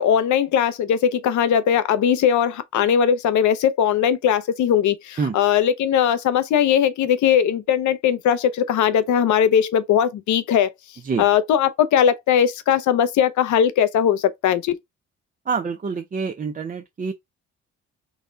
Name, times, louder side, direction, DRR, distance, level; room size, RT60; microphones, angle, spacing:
voice 1, 0.0-10.7 11.2-14.8, left 9 dB, 75° left, 0.7 m, -19 dB
voice 2, 15.4-17.1, right 5 dB, 30° right, 0.6 m, -26 dB
4.0 x 2.3 x 3.8 m
cardioid pair, 90°, 30 cm